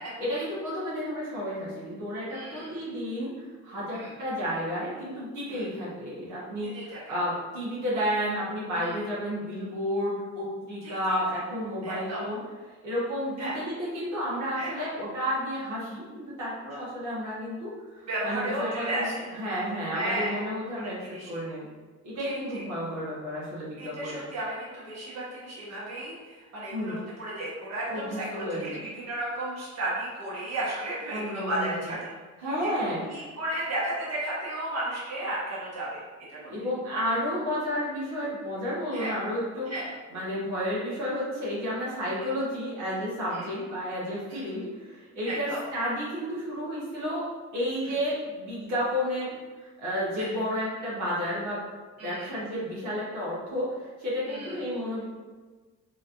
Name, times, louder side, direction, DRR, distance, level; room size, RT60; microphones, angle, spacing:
voice 1, 0.2-3.3 3.6-12.4 12.8-21.0 21.3-21.6 22.0-24.2 26.7-27.0 27.9-28.8 31.1-31.6 32.4-33.0 36.5-39.7 40.1-47.2 47.5-51.6 52.0-55.0, equal, 85° right, -8 dB, 1.2 m, -31 dB
voice 2, 2.3-2.8 3.9-4.1 5.5-5.7 6.7-7.0 8.8-8.9 10.8-11.0 11.8-12.2 13.4-13.6 14.6-14.7 18.1-19.2 19.9-20.4 20.8-21.3 22.2-22.6 23.8-32.1 33.0-36.0 36.3-36.5 38.9-39.1 39.7-39.9 42.2-42.3 43.3-43.5 44.3-44.5 45.3-45.6 47.8-48.0 50.2-50.3 52.0-52.3 54.3-54.5, right 1 dB, 60° right, -7 dB, 1.3 m, -34 dB
3.1 x 2.9 x 2.5 m, 1.3 s
cardioid pair, 90°, 30 cm